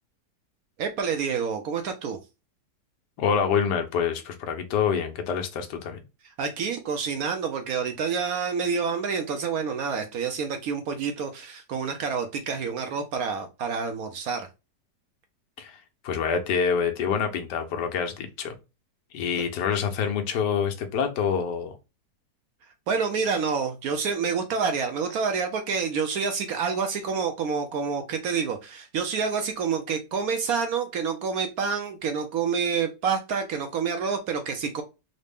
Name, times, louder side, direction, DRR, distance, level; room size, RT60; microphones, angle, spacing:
voice 1, 0.8-2.2 6.4-14.5 22.9-34.8, right 6 dB, 70° right, 0.9 m, -28 dB
voice 2, 3.2-6.0 15.6-18.6 19.1-21.8, left 6 dB, 75° left, 1.3 m, -26 dB
3.9 x 2.1 x 3.4 m
omnidirectional pair, 1.9 m